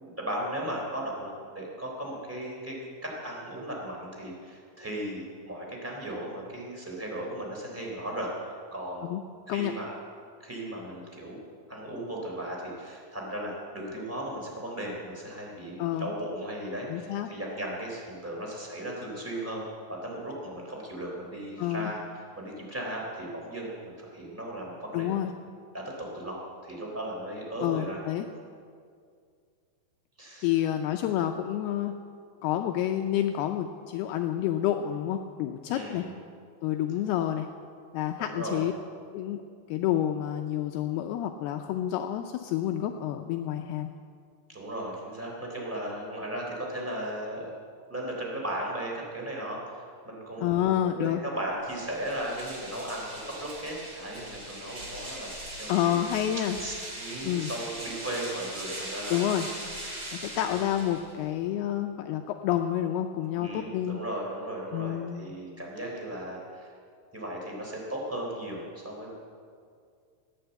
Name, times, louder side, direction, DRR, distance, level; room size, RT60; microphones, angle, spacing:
voice 1, 0.0-8.3 8.7-9.1 9.5-9.9 10.4-11.4 11.7-19.6 19.9-25.1 25.7-28.0 30.2-30.5 35.7-36.1 38.2-38.7 44.5-47.5 47.9-56.0 56.6-59.5 59.9-60.7 63.3-66.7 67.1-69.1, right 1 dB, 5° right, -1 dB, 2.7 m, -36 dB
voice 2, 15.8-16.1 16.9-17.3 21.6-21.9 24.9-25.3 27.6-28.3 30.4-31.9 32.4-36.0 36.6-37.5 37.9-38.7 39.1-39.4 39.7-43.9 50.4-51.2 55.7-56.6 57.2-57.5 59.1-59.5 60.1-64.0 64.7-65.3, left 11 dB, 90° left, 4 dB, 2.2 m, -29 dB
sound 1, 51.6-61.3, right 1 dB, 25° right, 3.0 m, -40 dB
17.5 x 10.5 x 8.1 m, 2.2 s
omnidirectional pair, 5.3 m